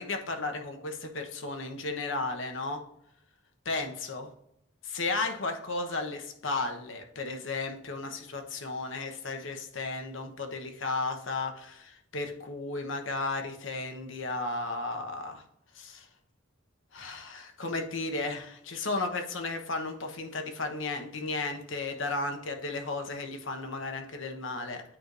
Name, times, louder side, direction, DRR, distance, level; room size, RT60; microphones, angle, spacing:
voice 1, 0.0-2.8 3.6-4.3 4.8-15.4 15.7-16.1 16.9-24.8, left 3 dB, 75° left, 4 dB, 1.1 m, -34 dB
9.1 x 4.8 x 2.6 m, 0.74 s
head